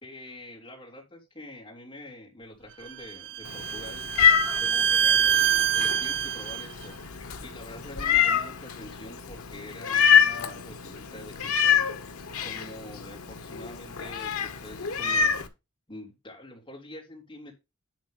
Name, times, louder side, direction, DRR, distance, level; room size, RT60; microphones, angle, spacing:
voice 1, 0.0-4.0 4.6-6.9 7.4-11.9 12.4-15.4 15.9-17.5, left 1 dB, 25° left, -1 dB, 3.0 m, -45 dB
Bowed string instrument, 2.9-6.7, right 9 dB, 55° right, 0.5 m, -25 dB
Meow, 3.4-15.5, left 7 dB, 75° left, 1.1 m, -26 dB
11.0 x 3.8 x 5.4 m, 0.25 s
head